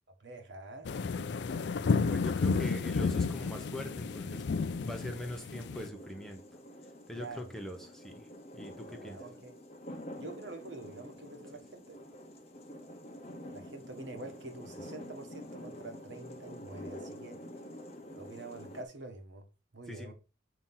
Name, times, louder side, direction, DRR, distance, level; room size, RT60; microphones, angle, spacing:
voice 1, 0.2-0.9 7.1-7.5 8.9-9.6 10.2-12.0 13.5-17.4 18.1-19.5 19.7-20.1, right 2 dB, 70° right, 1.3 m, -46 dB
sound 1, 0.8-5.9, left 4 dB, 60° left, 0.4 m, -31 dB
voice 2, 1.8-4.5 4.8-6.4 7.1-8.3 8.5-9.2 19.9-20.1, left 1 dB, ahead, 0.9 m, -42 dB
sound 2, 3.5-18.8, left 1 dB, 35° left, 1.0 m, -48 dB
7.6 x 2.9 x 5.6 m
head